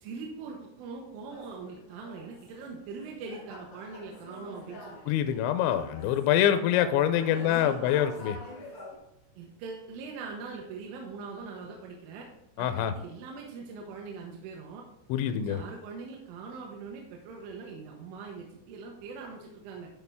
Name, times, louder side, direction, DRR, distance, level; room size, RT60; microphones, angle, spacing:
voice 1, 0.0-5.1 7.4-7.9 9.4-12.3 12.6-14.8 15.3-19.9, right 4 dB, 80° right, 0 dB, 3.4 m, -42 dB
sound 1, 1.3-9.0, left 1 dB, 70° left, 1.3 m, -47 dB
voice 2, 5.1-8.4 12.6-12.9 15.1-15.6, left 10 dB, 85° left, 9 dB, 2.6 m, -25 dB
12.0 x 4.4 x 3.5 m, 0.80 s
omnidirectional pair, 5.7 m